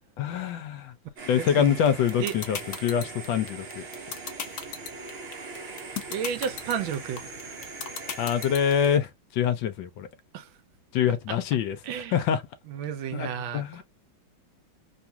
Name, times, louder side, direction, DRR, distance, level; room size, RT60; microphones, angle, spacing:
voice 1, 0.2-0.9 1.2-3.9 8.2-10.1 10.9-11.8 12.1-12.4 13.1-13.8, left 8 dB, 75° left, 1.4 m, -25 dB
sound 1, 1.2-9.0, right 4 dB, 50° right, 0.7 m, -41 dB
voice 2, 1.3-1.7 2.2-2.3 6.1-7.3 10.3-10.5 11.3-11.4 11.9-12.2 12.7-13.8, right 8 dB, 85° right, 1.5 m, -32 dB
sound 2, 1.9-8.8, left 8 dB, 60° left, 0.9 m, -34 dB
3.5 x 2.3 x 2.7 m
omnidirectional pair, 2.1 m